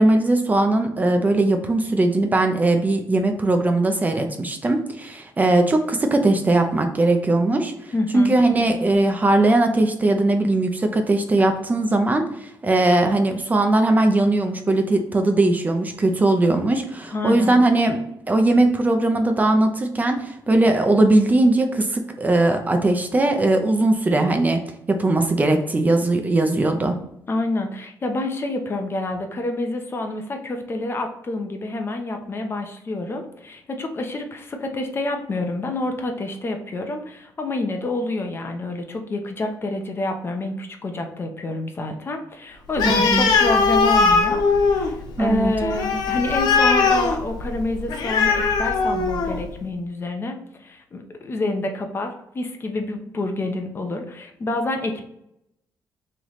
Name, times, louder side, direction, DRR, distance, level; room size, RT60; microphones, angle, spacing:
voice 1, 0.0-7.7 8.1-24.6 24.9-27.0 42.9-43.3 45.2-45.5, right 2 dB, 25° right, 5 dB, 0.5 m, -19 dB
voice 2, 7.9-8.4 17.1-17.5 27.3-55.0, left 2 dB, 35° left, 4 dB, 0.6 m, -28 dB
Animal, 42.7-49.5, left 4 dB, 85° left, 0.6 m, -20 dB
3.2 x 3.0 x 3.9 m, 0.78 s
cardioid pair, 105°, 7 cm